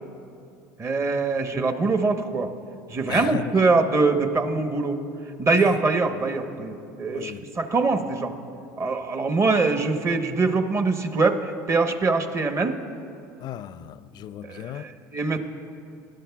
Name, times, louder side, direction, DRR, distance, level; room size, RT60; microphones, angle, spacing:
voice 1, 0.8-2.5 2.9-5.0 5.4-8.3 8.8-12.8 14.4-15.4, right 3 dB, 30° right, 1.0 m, -23 dB
voice 2, 3.1-3.6 5.5-5.7 7.1-7.4 13.4-14.9, left 11 dB, 50° left, 0.4 m, -35 dB
19.5 x 12.0 x 2.3 m
hypercardioid pair, 85°, 9 cm